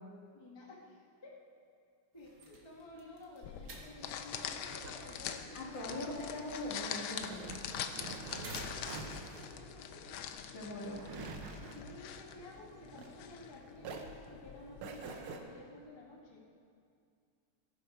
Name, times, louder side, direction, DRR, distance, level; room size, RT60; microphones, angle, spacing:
voice 1, 0.3-0.9 1.2-1.4 2.1-6.1 8.1-10.2 11.5-16.4, left 1 dB, 15° left, -3 dB, 1.5 m, -53 dB
sound 1, 2.2-9.1, right 2 dB, 50° right, 2.1 m, -54 dB
sound 2, 3.4-14.8, left 8 dB, 80° left, 1.5 m, -44 dB
sound 3, 4.4-13.5 13.8-15.4, right 3 dB, 80° right, 1.9 m, -47 dB
voice 2, 5.5-7.6 10.5-11.1, left 1 dB, 60° left, -6 dB, 3.9 m, -41 dB
18.5 x 11.5 x 4.7 m, 2.3 s
omnidirectional pair, 2.3 m